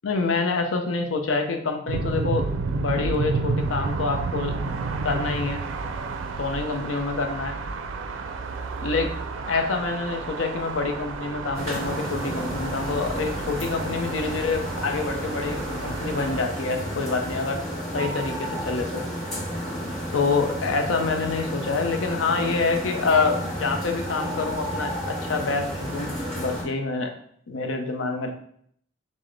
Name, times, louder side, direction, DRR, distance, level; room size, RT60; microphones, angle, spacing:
voice 1, 0.0-2.5 2.7-4.5 5.0-5.6 6.4-7.5 8.8-9.1 9.5-17.6 17.9-19.0 20.1-26.1 26.4-27.1 27.5-28.3, left 4 dB, 90° left, 4 dB, 0.6 m, -26 dB
sound 1, 1.9-16.4, right 4 dB, 80° right, 0.4 m, -31 dB
sound 2, 11.5-26.6, equal, 40° left, 1.7 m, -32 dB
5.8 x 2.0 x 3.2 m, 0.66 s
head